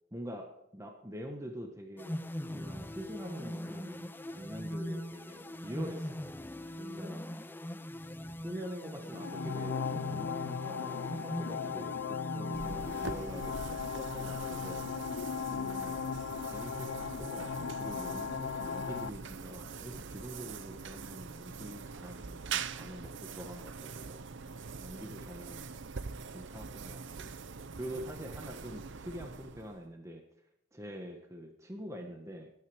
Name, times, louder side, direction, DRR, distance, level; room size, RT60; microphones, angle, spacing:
voice 1, 0.1-2.2 2.5-6.3 6.8-7.3 8.4-15.1 15.5-16.2 16.4-24.2 24.8-25.7 26.3-27.3 27.8-30.2 30.7-32.5, equal, 15° right, 3 dB, 1.3 m, -45 dB
sound 1, 2.0-13.8, left 1 dB, 10° left, 0.4 m, -41 dB
sound 2, 9.1-19.1, left 6 dB, 65° left, 0.4 m, -37 dB
sound 3, 12.5-29.9, right 5 dB, 55° right, 0.6 m, -43 dB
20.5 x 9.5 x 3.5 m, 0.79 s
head